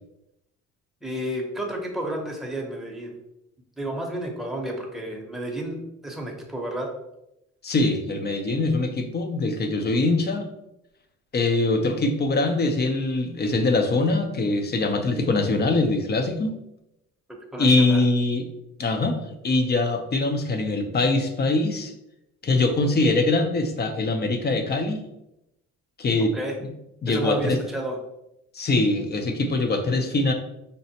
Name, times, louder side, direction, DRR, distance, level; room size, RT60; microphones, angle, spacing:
voice 1, 1.0-3.1 3.8-6.9 17.5-18.0 26.3-26.5 27.1-28.0, right 1 dB, ahead, -1 dB, 0.8 m, -31 dB
voice 2, 7.6-10.5 11.3-16.6 17.6-18.5 18.8-19.2 19.4-21.9 22.4-25.0 26.0-26.3 26.6-26.7 27.0-27.6 28.5-30.3, left 2 dB, 35° left, 6 dB, 0.6 m, -23 dB
5.2 x 2.1 x 2.8 m, 0.86 s
cardioid pair, 90°, 30 cm